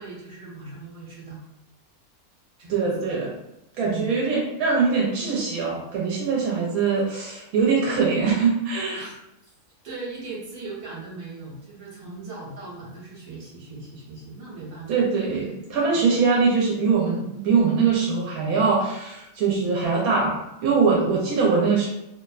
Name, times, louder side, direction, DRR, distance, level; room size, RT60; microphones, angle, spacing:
voice 1, 0.0-1.4 2.6-2.9 3.8-4.1 8.9-9.1 9.8-14.9 15.4-15.5 15.9-16.1 20.9-21.2, right 3 dB, 50° right, -6 dB, 1.2 m, -39 dB
voice 2, 2.7-3.3 3.8-9.1 14.9-21.9, right 5 dB, 80° right, -4 dB, 1.0 m, -22 dB
2.8 x 2.1 x 2.4 m, 0.86 s
omnidirectional pair, 1.5 m